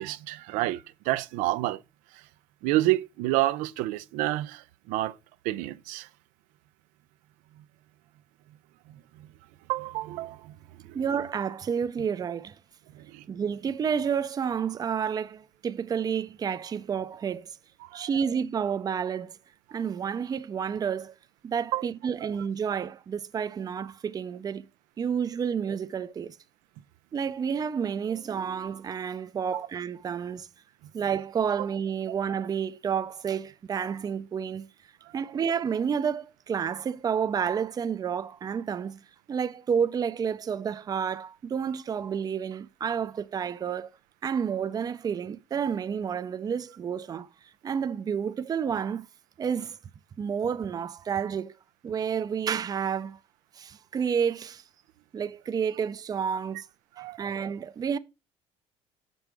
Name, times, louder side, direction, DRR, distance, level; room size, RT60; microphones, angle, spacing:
voice 1, 0.0-1.8 2.6-5.1 5.4-6.1 9.7-10.5 10.8-10.9 12.9-13.2 17.9-18.1 21.7-21.9 22.2-22.3 29.5-29.6 57.0-57.3, right 17 dB, 85° right, 0.5 m, -29 dB
voice 2, 10.9-12.6 13.3-17.5 17.9-19.4 19.7-21.1 21.4-24.6 25.0-26.4 27.1-30.5 30.9-34.7 35.1-39.0 39.3-43.9 44.2-47.3 47.6-49.1 49.4-49.8 50.2-51.5 51.8-53.2 53.5-54.6 55.1-56.7 57.0-58.0, right 7 dB, 30° right, 0.5 m, -30 dB
6.6 x 5.4 x 4.7 m
cardioid pair, 110°, 13 cm